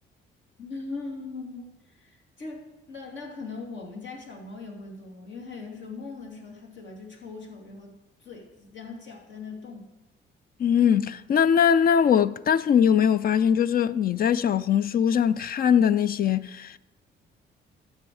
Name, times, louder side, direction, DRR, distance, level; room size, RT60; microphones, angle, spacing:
voice 1, 0.6-9.9, left 3 dB, 70° left, 2.9 m, -40 dB
voice 2, 10.6-16.8, left 8 dB, 50° left, 0.4 m, -21 dB
12.5 x 7.1 x 4.8 m
cardioid pair, 90°, 20 cm